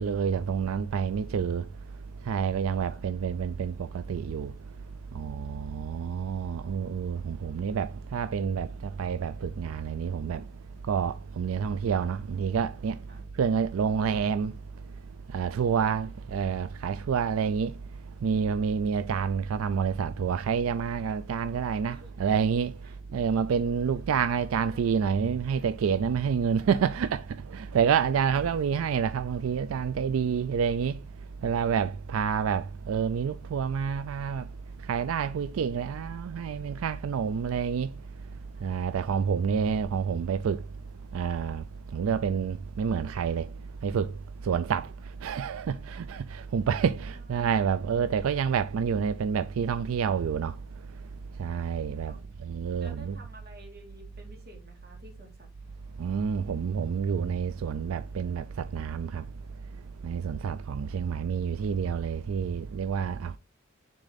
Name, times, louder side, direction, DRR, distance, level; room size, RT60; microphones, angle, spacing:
voice 1, 0.0-1.6 2.3-4.5 5.1-10.4 10.9-13.0 13.4-14.5 15.3-17.7 18.2-22.7 23.1-27.2 27.5-30.9 31.4-34.4 34.9-37.9 38.6-40.6 41.1-41.6 41.9-43.5 43.8-44.1 44.4-44.9 45.2-50.5 51.4-52.1 52.4-53.2 56.0-59.2 60.0-63.4, right 6 dB, 85° right, 0.4 m, -28 dB
voice 2, 21.5-22.1 22.8-23.0 24.6-24.8 25.6-25.7 38.5-38.8 44.4-44.6 47.0-47.2 52.1-52.3 52.8-55.5, right 1 dB, 50° right, 2.2 m, -52 dB
6.6 x 3.6 x 4.0 m
head